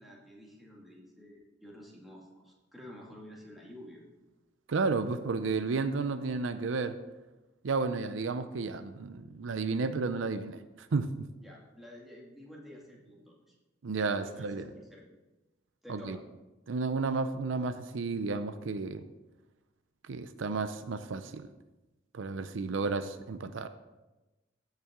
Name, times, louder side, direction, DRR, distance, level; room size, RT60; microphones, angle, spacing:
voice 1, 0.0-4.0 11.4-13.4 14.2-15.0 15.8-16.2, left 1 dB, ahead, -4 dB, 2.1 m, -50 dB
voice 2, 4.7-7.0 7.6-11.2 13.8-14.7 15.9-16.2 16.7-19.0 20.1-21.5 22.1-23.7, right 4 dB, 85° right, 11 dB, 0.5 m, -32 dB
15.5 x 5.7 x 3.7 m, 1.1 s
head